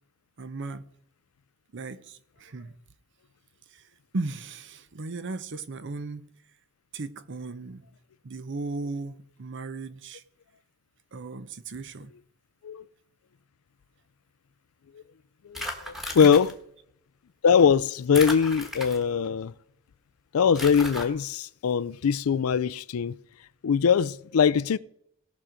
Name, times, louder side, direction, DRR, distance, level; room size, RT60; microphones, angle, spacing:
voice 1, 0.4-0.9 1.7-2.7 3.7-3.8 4.1-6.2 6.9-7.9 8.2-10.2 11.1-12.1 16.2-16.4, right 3 dB, 60° right, 0.7 m, -36 dB
voice 2, 15.5-16.5 17.4-19.5 20.3-23.2 23.6-24.8, left 6 dB, 85° left, 0.4 m, -22 dB
sound 1, 15.5-16.5 18.1-19.3 20.5-21.1, left 1 dB, ahead, 1.4 m, -35 dB
17.5 x 6.1 x 5.0 m
head